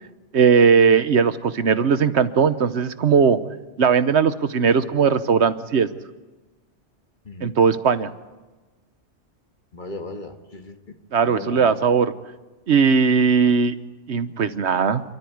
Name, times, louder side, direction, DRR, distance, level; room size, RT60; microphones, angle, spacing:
voice 1, 0.3-3.4 3.8-5.9 7.4-8.1 11.1-12.1 12.7-13.8 14.1-15.0, right 6 dB, 70° right, 12 dB, 1.2 m, -18 dB
voice 2, 7.2-7.6 9.7-10.9 11.2-11.8, left 2 dB, 45° left, 5 dB, 1.9 m, -37 dB
28.5 x 13.5 x 9.5 m, 1.2 s
omnidirectional pair, 1.2 m